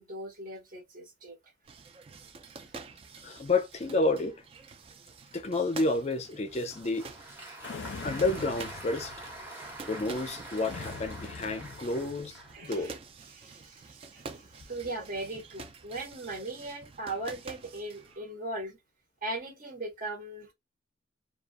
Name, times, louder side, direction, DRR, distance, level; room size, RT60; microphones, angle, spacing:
voice 1, 0.0-1.4 11.9-12.0 12.5-13.0 13.3-18.8 19.2-20.5, right 2 dB, 50° right, 1.0 m, -39 dB
sound 1, 1.7-18.2, right 4 dB, 35° right, 0.3 m, -48 dB
voice 2, 3.2-4.4 5.3-7.1 8.0-9.1 9.9-13.0, left 2 dB, 40° left, 0.4 m, -30 dB
Applause, 6.5-12.7, right 1 dB, 15° right, 0.8 m, -45 dB
sound 2, 7.6-9.5 10.6-12.5, left 5 dB, 90° left, 0.5 m, -43 dB
2.4 x 2.3 x 2.5 m
head